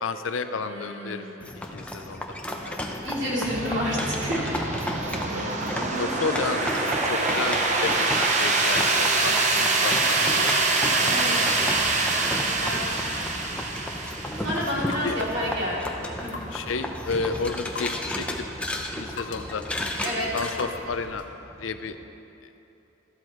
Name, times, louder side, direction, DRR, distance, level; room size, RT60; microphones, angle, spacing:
voice 1, 0.0-1.2 1.7-2.2 5.3-5.6 6.0-10.5 15.0-15.2 16.5-18.4 18.9-19.7 20.3-21.2 21.6-22.0, left 4 dB, 85° left, 9 dB, 0.6 m, -31 dB
voice 2, 0.5-1.6 2.2-2.7 3.0-4.5 5.4-5.5 11.1-11.4 12.3-13.5 14.4-16.3 20.0-20.3, equal, 60° right, -6 dB, 2.8 m, -31 dB
sound 1, 1.4-21.2, left 1 dB, 5° left, 0.7 m, -34 dB
sound 2, 3.4-22.0, right 3 dB, 35° right, 0.9 m, -27 dB
sound 3, 14.4-21.4, left 3 dB, 65° left, 1.3 m, -43 dB
14.0 x 12.5 x 3.1 m, 3.0 s
head